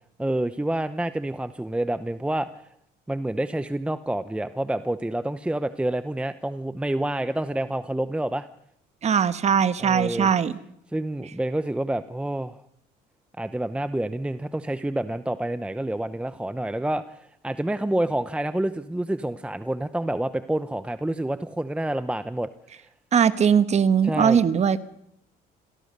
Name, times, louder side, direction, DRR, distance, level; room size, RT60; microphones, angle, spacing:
voice 1, 0.2-2.6 3.1-8.5 9.8-10.3 10.9-12.6 13.4-22.5 24.0-24.4, right 1 dB, 5° right, 12 dB, 0.8 m, -28 dB
voice 2, 9.0-10.5 23.1-24.8, right 7 dB, 40° right, 12 dB, 1.4 m, -20 dB
26.5 x 17.5 x 6.8 m, 0.76 s
cardioid pair, 110°, 17 cm